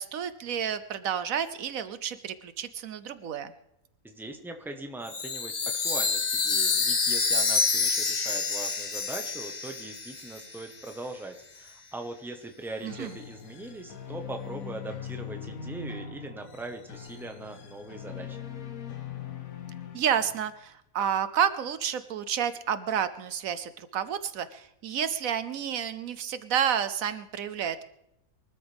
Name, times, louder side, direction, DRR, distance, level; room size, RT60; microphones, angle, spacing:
voice 1, 0.0-3.5 12.8-13.1 19.9-27.8, right 8 dB, 75° right, 12 dB, 1.1 m, -30 dB
voice 2, 4.0-5.6 5.8-18.4, right 2 dB, ahead, 4 dB, 1.1 m, -41 dB
Chime, 5.1-10.6, left 4 dB, 35° left, 1.0 m, -27 dB
sound 1, 12.9-20.6, left 8 dB, 75° left, 1.6 m, -41 dB
23.5 x 13.0 x 3.5 m, 0.81 s
omnidirectional pair, 1.5 m